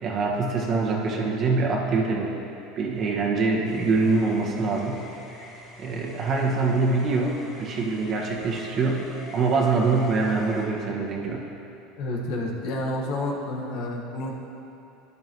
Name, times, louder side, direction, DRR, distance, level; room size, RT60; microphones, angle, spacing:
voice 1, 0.0-2.3 2.8-5.0 5.8-11.4, right 3 dB, 40° right, -2 dB, 1.7 m, -24 dB
sound 1, 3.6-10.7, left 1 dB, 40° left, 2.5 m, -45 dB
voice 2, 12.0-14.3, left 1 dB, 65° left, -1 dB, 1.6 m, -29 dB
12.5 x 10.5 x 3.1 m, 2.9 s
supercardioid pair, 115°, 0 cm